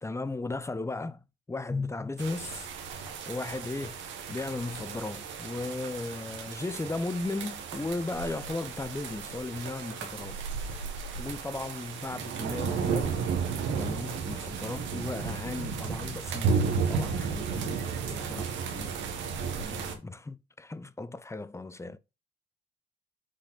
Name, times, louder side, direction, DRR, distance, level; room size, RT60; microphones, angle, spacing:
voice 1, 0.0-2.7 3.3-4.0 4.3-10.5 11.2-13.1 13.8-22.0, left 2 dB, 15° left, 0.7 m, -36 dB
sound 1, 2.2-19.9, right 5 dB, 85° right, 1.2 m, -33 dB
6.3 x 4.0 x 4.0 m
supercardioid pair, 55°, 19 cm